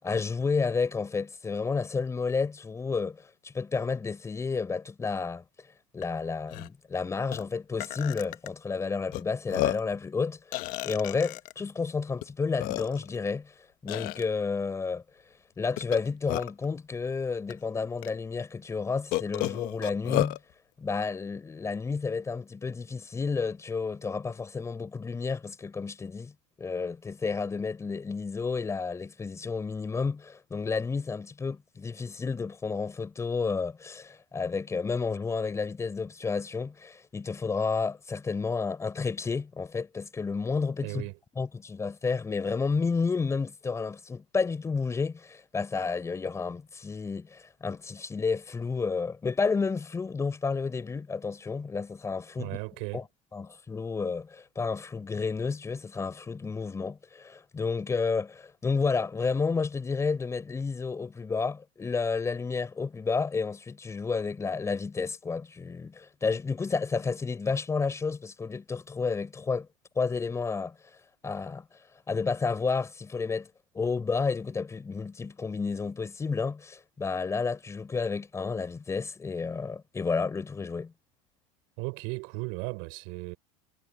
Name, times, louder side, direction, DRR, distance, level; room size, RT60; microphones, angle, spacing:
voice 1, 0.0-5.4 5.9-13.5 13.8-15.0 15.6-20.4 20.8-26.3 26.6-41.0 41.4-52.6 52.9-53.0 53.3-69.7 70.0-70.8 71.2-71.6 72.1-73.5 73.7-80.9, left 4 dB, 15° left, 4.0 m, -31 dB
Burping eructation, 6.0-6.1 6.5-6.7 7.3-7.4 7.8-8.5 9.1-9.2 9.5-9.9 10.5-11.5 12.2-12.3 12.6-13.2 13.9-14.2 15.8-16.7 17.5-17.6 18.0-18.1 19.1-20.4, left 19 dB, 55° left, 1.2 m, -31 dB
voice 2, 40.8-41.1 52.4-53.0 81.8-83.4, right 32 dB, 65° right, 5.1 m, -36 dB
supercardioid pair, 125°, 17 cm